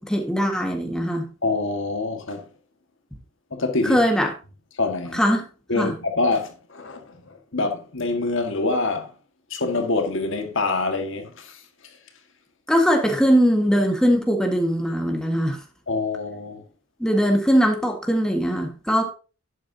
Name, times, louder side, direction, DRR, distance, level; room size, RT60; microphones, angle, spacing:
voice 1, 0.0-1.3 3.8-4.3 5.1-5.4 5.8-5.9 12.7-15.6 17.0-19.1, equal, 5° left, 1.6 m, -21 dB
voice 2, 1.4-2.5 3.5-4.0 4.8-5.2 5.7-9.1 9.5-11.6 15.9-16.6, left 3 dB, 65° left, 1.7 m, -25 dB
11.5 x 8.8 x 2.8 m
head